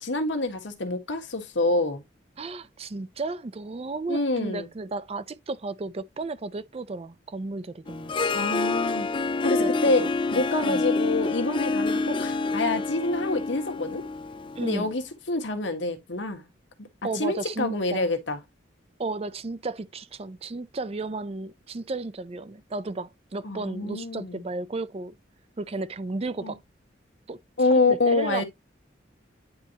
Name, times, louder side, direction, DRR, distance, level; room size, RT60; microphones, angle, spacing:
voice 1, 0.0-2.0 4.1-4.7 8.3-9.1 9.4-10.0 10.3-14.0 14.6-15.0 15.3-16.5 17.1-18.4 23.4-24.4 26.4-26.5 27.6-28.4, left 2 dB, 85° left, 1.5 m, -26 dB
voice 2, 2.4-8.1 9.6-10.1 10.6-10.9 14.6-14.9 17.0-18.1 19.0-25.2 25.6-26.6 27.3-27.4 27.7-28.4, right 3 dB, 35° right, 0.4 m, -33 dB
Harp, 7.9-15.0, left 3 dB, 25° left, 0.4 m, -27 dB
9.5 x 4.1 x 2.8 m
head